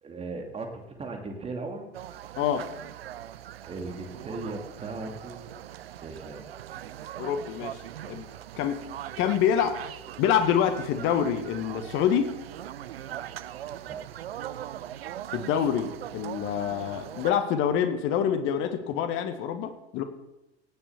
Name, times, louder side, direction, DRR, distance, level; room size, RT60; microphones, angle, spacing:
voice 1, 0.0-1.9 3.6-5.7 6.0-6.5 13.8-14.0, right 3 dB, 20° right, 3 dB, 2.4 m, -37 dB
sound 1, 1.9-17.3, right 11 dB, 60° right, 0.7 m, -40 dB
voice 2, 2.4-2.7 7.2-8.3 8.6-8.8 9.2-9.9 10.2-12.3 15.3-20.0, left 8 dB, 40° left, 8 dB, 1.4 m, -26 dB
18.0 x 7.1 x 6.9 m, 0.95 s
figure-of-eight pair, 85°, 33 cm